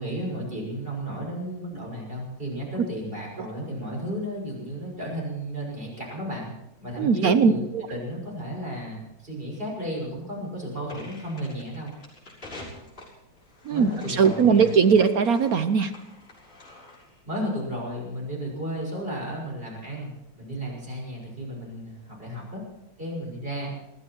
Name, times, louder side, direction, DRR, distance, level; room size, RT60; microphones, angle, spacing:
voice 1, 0.0-6.5 6.8-7.6 7.9-11.9 13.7-14.7 17.2-22.6 23.0-23.7, equal, 25° right, -1 dB, 6.5 m, -33 dB
voice 2, 7.0-7.8 13.6-15.9, right 6 dB, 65° right, 9 dB, 0.9 m, -20 dB
sound 1, 10.9-17.2, left 2 dB, 25° left, 6.6 m, -46 dB
21.0 x 14.0 x 4.5 m, 0.86 s
omnidirectional pair, 2.3 m